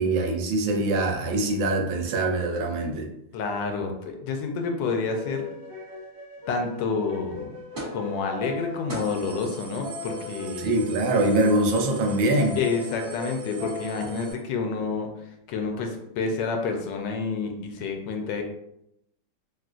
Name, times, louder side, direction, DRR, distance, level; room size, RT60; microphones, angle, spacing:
voice 1, 0.0-3.1 10.6-12.6, right 2 dB, 80° right, 2 dB, 1.3 m, -23 dB
voice 2, 3.3-5.5 6.5-7.5 7.9-10.7 12.6-15.1 15.5-18.4, left 4 dB, 80° left, 3 dB, 1.3 m, -29 dB
sound 1, 4.9-14.3, left 3 dB, 60° right, 0.7 m, -39 dB
sound 2, 7.8-8.0 8.5-8.6 8.9-14.3, right 3 dB, 30° right, 1.3 m, -41 dB
3.7 x 2.4 x 2.4 m, 0.80 s
omnidirectional pair, 2.0 m